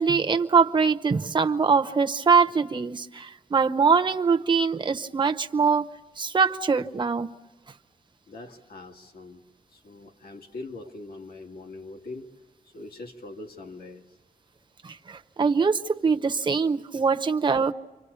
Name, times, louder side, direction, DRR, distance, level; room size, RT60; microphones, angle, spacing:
voice 1, 0.0-5.9 6.2-7.4 14.8-17.7, right 5 dB, 30° right, 0.8 m, -23 dB
voice 2, 8.3-9.4 9.7-12.3 12.6-14.0, left 2 dB, 90° left, 2.2 m, -42 dB
29.0 x 25.5 x 6.9 m
wide cardioid pair, 145°, 15 cm